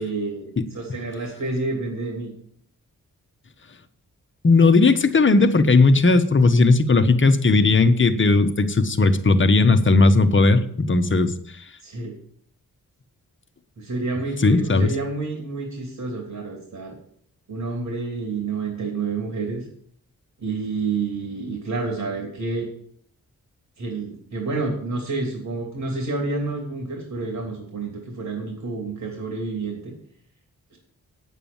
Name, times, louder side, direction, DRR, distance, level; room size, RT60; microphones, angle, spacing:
voice 1, 0.0-2.3 11.8-12.1 13.8-17.0 17.5-19.7 20.4-22.7 23.8-29.9 30.7-30.8, right 3 dB, 70° right, 1 dB, 3.0 m, -29 dB
voice 2, 4.4-11.3 14.4-14.9, left 3 dB, 35° left, 9 dB, 1.1 m, -17 dB
8.9 x 8.4 x 7.2 m, 0.63 s
cardioid pair, 80°, 34 cm